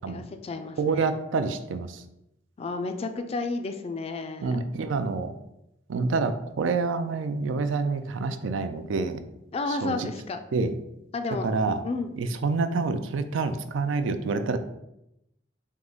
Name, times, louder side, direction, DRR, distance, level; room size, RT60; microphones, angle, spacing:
voice 1, 0.1-1.1 2.6-4.6 9.5-10.4 11.1-11.5 11.8-12.1, left 3 dB, 30° left, 7 dB, 0.3 m, -32 dB
voice 2, 0.8-2.0 4.4-5.3 5.9-9.2 9.8-10.0 10.5-10.8 11.4-11.8 12.2-14.6, right 4 dB, 80° right, 9 dB, 0.4 m, -27 dB
3.6 x 2.8 x 3.9 m, 0.84 s
head